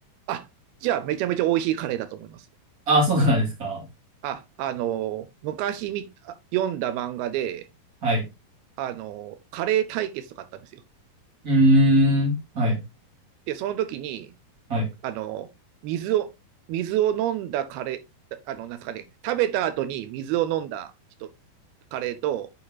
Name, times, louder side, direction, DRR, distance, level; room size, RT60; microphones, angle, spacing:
voice 1, 0.8-2.5 4.2-7.7 8.8-10.8 13.5-14.3 15.0-15.5 15.8-16.3 16.7-18.0 18.3-20.9 21.2-21.3 21.9-22.5, right 12 dB, 85° right, 2.6 m, -28 dB
voice 2, 2.9-3.8 8.0-8.3 11.4-12.8 14.7-14.9, equal, 25° right, 2.6 m, -20 dB
9.8 x 4.8 x 2.3 m
omnidirectional pair, 4.4 m